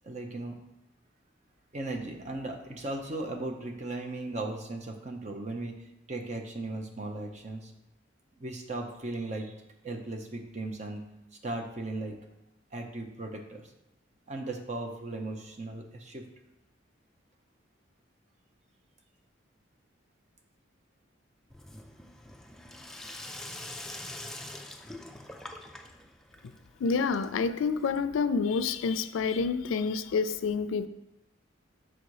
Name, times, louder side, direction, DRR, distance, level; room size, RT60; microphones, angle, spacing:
voice 1, 0.0-0.6 1.7-7.7 8.4-9.5 9.8-11.0 11.4-12.2 12.7-13.7 14.3-16.2, right 2 dB, 35° right, 0.7 m, -37 dB
Sink (filling or washing), 21.5-28.3, left 1 dB, ahead, 0.3 m, -44 dB
voice 2, 26.8-30.9, left 5 dB, 85° left, 0.4 m, -28 dB
6.1 x 3.9 x 4.7 m
head